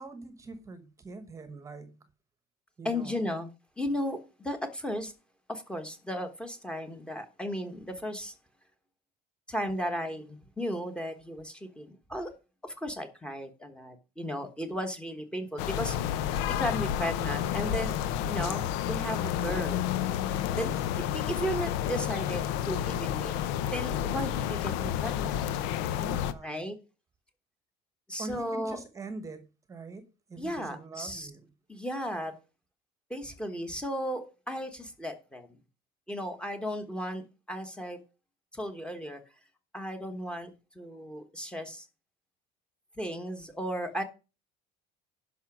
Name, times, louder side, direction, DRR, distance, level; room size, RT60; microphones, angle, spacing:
voice 1, 0.0-2.0 2.8-3.3 20.5-20.8 26.0-26.6 28.2-31.5, right 3 dB, 15° right, 1.1 m, -43 dB
voice 2, 2.8-3.5 3.8-5.1 5.5-8.3 9.5-12.3 12.6-19.8 20.6-23.4 23.7-25.4 26.4-26.7 28.1-28.8 30.4-31.3 31.7-32.3 33.1-35.6 36.1-38.0 38.5-39.2 39.7-40.5 40.7-41.8 43.0-44.0, equal, 5° left, 1.2 m, -35 dB
sound 1, 15.6-26.3, left 10 dB, 85° left, 0.9 m, -30 dB
11.0 x 5.8 x 5.9 m
cardioid pair, 175°, 18 cm